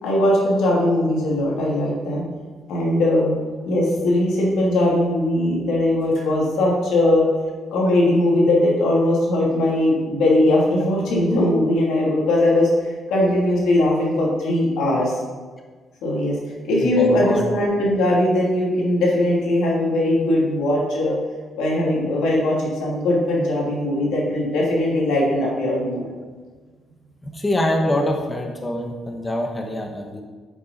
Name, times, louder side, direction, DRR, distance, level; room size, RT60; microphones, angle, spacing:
voice 1, 0.0-2.2 2.7-3.3 3.6-7.2 7.7-12.7 13.1-15.2 16.0-16.4 16.6-21.1 21.6-26.0, left 1 dB, 85° left, -4 dB, 2.8 m, -20 dB
voice 2, 16.8-17.4 27.2-30.2, left 1 dB, 15° left, 2 dB, 1.1 m, -24 dB
9.2 x 7.1 x 4.1 m, 1.4 s
cardioid pair, 90°, 0 cm